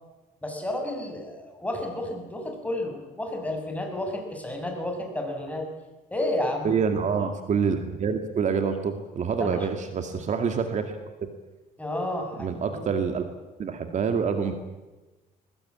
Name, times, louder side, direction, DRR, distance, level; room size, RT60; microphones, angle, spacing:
voice 1, 0.4-5.6 6.1-6.7 9.4-9.6 11.8-13.0, left 1 dB, 10° left, 2 dB, 7.0 m, -31 dB
voice 2, 6.6-11.0 12.4-13.3 13.6-14.5, right 6 dB, 45° right, 7 dB, 2.2 m, -26 dB
22.0 x 21.0 x 8.8 m, 1.1 s
cardioid pair, 110°, 17 cm